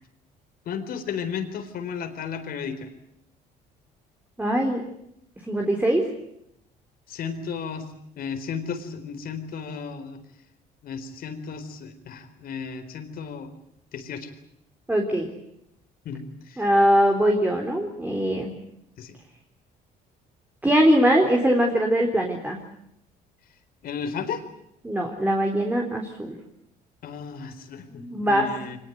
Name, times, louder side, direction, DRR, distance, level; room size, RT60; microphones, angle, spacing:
voice 1, 0.7-2.9 7.1-7.9 8.2-10.2 10.8-13.5 13.9-14.3 16.0-16.6 19.0-19.2 23.8-24.4 27.0-28.8, left 6 dB, 60° left, 8 dB, 4.2 m, -34 dB
voice 2, 4.4-4.8 5.5-6.0 14.9-15.3 16.6-18.5 20.6-22.6 24.8-26.4 27.9-28.5, equal, 10° right, 1 dB, 3.8 m, -21 dB
24.5 x 20.5 x 9.4 m, 0.78 s
cardioid pair, 110°, 17 cm